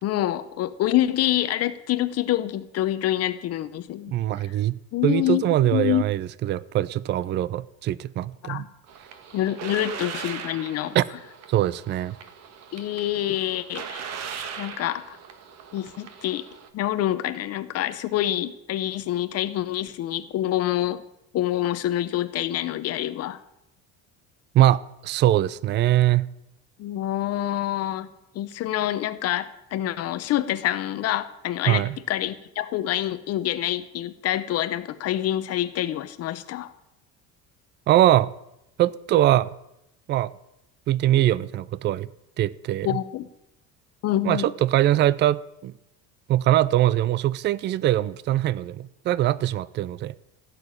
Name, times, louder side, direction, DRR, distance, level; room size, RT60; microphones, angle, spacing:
voice 1, 0.0-4.1 4.4-4.5 4.9-6.0 8.4-8.7 9.3-11.0 12.7-14.1 14.6-15.2 15.7-16.5 16.7-21.0 21.3-23.4 26.8-28.1 28.3-36.7 42.8-43.3 44.0-44.5, left 13 dB, 45° left, 0.8 m, -26 dB
voice 2, 4.1-4.8 5.0-8.7 10.9-11.1 11.5-12.2 24.5-26.3 31.7-32.0 37.9-38.3 38.8-39.5 40.1-40.3 40.9-42.1 42.4-43.0 44.2-45.7 46.3-50.2, right 13 dB, 30° right, 0.4 m, -22 dB
sound 1, 8.9-16.7, right 7 dB, 50° right, 1.6 m, -39 dB
16.5 x 6.8 x 9.9 m
cardioid pair, 155°, 34 cm